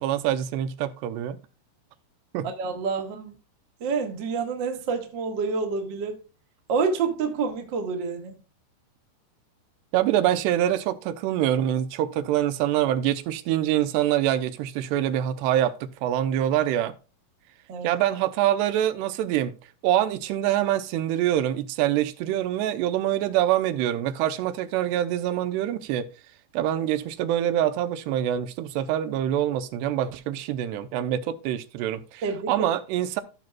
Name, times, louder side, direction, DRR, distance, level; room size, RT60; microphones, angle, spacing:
voice 1, 0.0-1.4 2.3-2.5 9.9-16.9 17.8-19.6 19.8-26.1 26.5-33.2, right 12 dB, 85° right, 2.8 m, -25 dB
voice 2, 2.4-3.4 3.8-6.2 6.7-8.3 17.7-17.9 32.2-32.7, right 5 dB, 55° right, 1.2 m, -28 dB
14.5 x 6.0 x 2.3 m
omnidirectional pair, 4.8 m